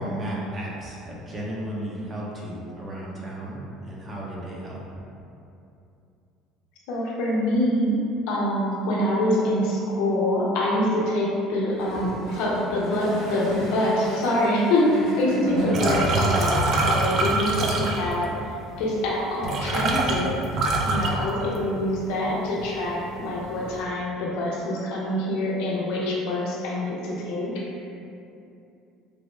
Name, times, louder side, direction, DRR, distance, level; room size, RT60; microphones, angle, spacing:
voice 1, 0.0-4.8, right 1 dB, 30° right, -4 dB, 0.7 m, -34 dB
voice 2, 6.9-7.9 8.3-18.3 18.8-20.3 20.8-27.5, left 1 dB, 80° left, -4 dB, 0.6 m, -25 dB
Gurgling / Toilet flush, 11.7-16.6 17.4-17.5, equal, 65° right, 1.5 m, -32 dB
sound 1, 15.7-18.3 19.1-19.2 19.4-21.9 22.2-22.7 23.0-23.7, right 2 dB, 50° right, 0.4 m, -24 dB
3.3 x 2.1 x 3.1 m, 2.7 s
supercardioid pair, 95°, 0 cm